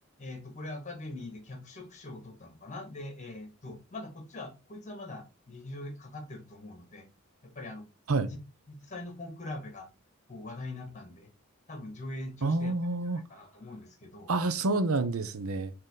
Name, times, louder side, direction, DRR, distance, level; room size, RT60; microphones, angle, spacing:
voice 1, 0.2-7.1 7.4-7.9 8.2-8.4 8.7-9.9 10.3-11.3 11.7-12.7 13.1-14.3, left 2 dB, 35° left, 1.8 m, -42 dB
voice 2, 12.4-13.2 14.3-15.7, right 3 dB, 75° right, 0.7 m, -28 dB
6.5 x 3.8 x 3.9 m
head